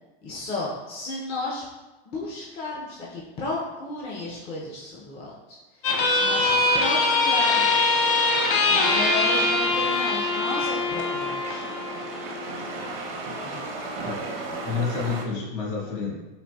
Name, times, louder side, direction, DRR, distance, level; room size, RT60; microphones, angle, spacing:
voice 1, 0.2-1.6 2.1-5.6 6.1-8.0 8.7-11.7 13.4-13.6, left 2 dB, 20° left, -4 dB, 0.4 m, -33 dB
sound 1, 5.8-12.9, left 3 dB, 70° left, 0.7 m, -23 dB
sound 2, 5.9-15.3, right 2 dB, 75° right, 0.7 m, -34 dB
voice 2, 14.0-16.2, left 5 dB, 50° left, -3 dB, 1.2 m, -30 dB
4.1 x 2.5 x 2.2 m, 1.1 s
supercardioid pair, 130°, 29 cm